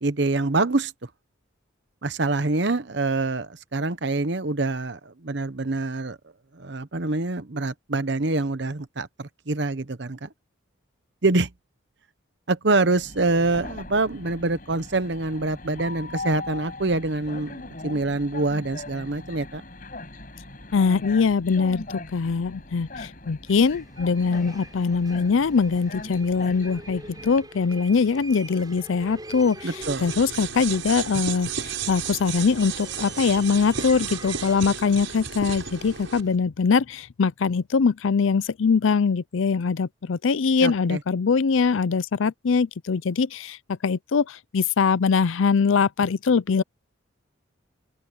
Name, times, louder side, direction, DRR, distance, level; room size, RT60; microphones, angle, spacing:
voice 1, 0.0-0.9 2.0-6.2 6.5-10.3 11.2-11.5 12.5-19.6 29.6-30.1 40.6-41.0, right 2 dB, 60° right, 1.0 m, -25 dB
Train, 13.0-27.4, left 2 dB, 45° left, 6.1 m, -40 dB
voice 2, 20.7-29.7 30.0-43.6 43.8-46.6, left 5 dB, 75° left, 0.5 m, -22 dB
sound 1, 23.5-36.4, right 2 dB, 20° right, 6.1 m, -45 dB
sound 2, 29.8-36.2, right 7 dB, 75° right, 6.3 m, -33 dB
open air
head